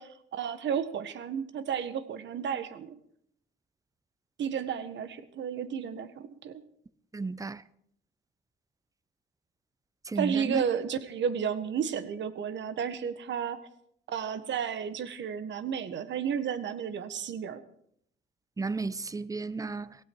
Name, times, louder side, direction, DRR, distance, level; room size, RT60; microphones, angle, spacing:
voice 1, 0.0-3.0 4.4-6.6 10.1-13.6 14.1-17.6, right 7 dB, 65° right, 1.5 m, -32 dB
voice 2, 7.1-7.6 10.1-10.6 18.6-19.9, right 3 dB, 15° right, 0.7 m, -33 dB
17.5 x 16.5 x 4.7 m
cardioid pair, 90°, 20 cm